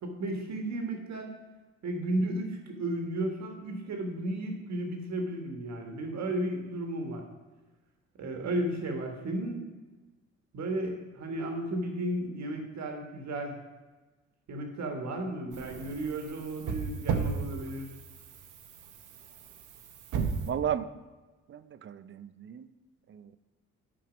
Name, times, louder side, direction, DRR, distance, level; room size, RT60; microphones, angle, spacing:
voice 1, 0.0-1.3 1.8-7.2 8.2-9.7 10.5-13.6 14.5-17.9, right 1 dB, 65° right, 3 dB, 1.6 m, -34 dB
sound 1, 15.5-20.5, right 6 dB, 80° right, 0.9 m, -35 dB
voice 2, 20.4-20.9 21.5-22.7 23.1-23.4, right 9 dB, 40° right, 14 dB, 0.5 m, -34 dB
9.1 x 4.7 x 5.2 m, 1.2 s
cardioid pair, 90°, 30 cm